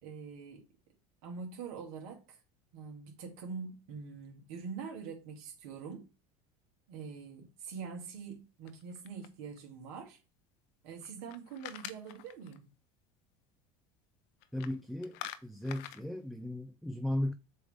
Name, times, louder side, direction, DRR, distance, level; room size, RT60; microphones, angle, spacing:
voice 1, 0.0-0.6 1.2-2.4 2.7-6.1 6.9-10.2 10.8-12.7, right 5 dB, 70° right, 2.6 m, -44 dB
sound 1, 8.7-9.6 11.0-12.6 14.4-14.8 15.0-16.0, left 12 dB, 65° left, 0.9 m, -46 dB
voice 2, 14.5-17.3, left 1 dB, ahead, 0.6 m, -36 dB
7.4 x 3.4 x 3.7 m
hypercardioid pair, 85°, 19 cm